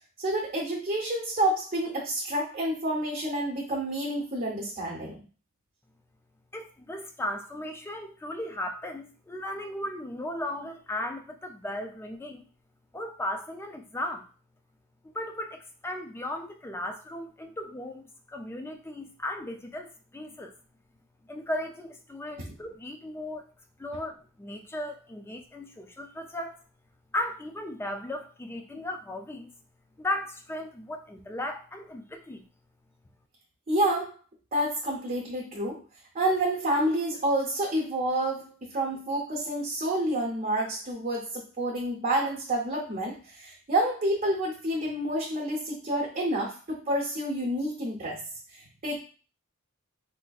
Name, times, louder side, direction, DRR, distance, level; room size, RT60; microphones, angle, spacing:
voice 1, 0.2-5.2 22.4-22.5 33.7-34.1 34.5-35.8 36.1-48.2 48.5-49.0, right 1 dB, 35° right, -3 dB, 0.7 m, -29 dB
voice 2, 6.5-12.5 12.9-14.3 15.1-20.5 21.3-23.5 23.8-26.6 27.1-29.5 30.0-32.4, left 1 dB, 10° left, 5 dB, 0.3 m, -36 dB
4.2 x 2.5 x 2.3 m, 0.38 s
head